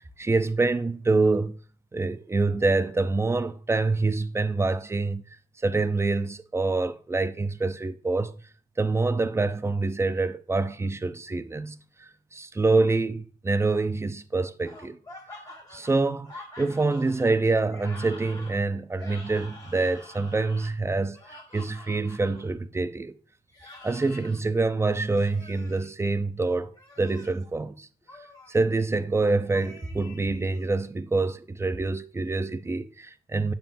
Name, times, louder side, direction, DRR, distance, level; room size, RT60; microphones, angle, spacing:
voice 1, 0.2-1.6 1.9-5.3 5.6-8.3 8.8-15.0 15.7-23.1 23.8-27.9 28.5-33.5, right 3 dB, 15° right, 0.5 m, -26 dB
sound 1, 14.6-22.5 23.5-24.4 25.1-25.9 26.7-27.4 28.1-28.6 29.5-30.7, left 2 dB, 20° left, 1.5 m, -47 dB
6.9 x 5.7 x 2.5 m
cardioid pair, 90°, 20 cm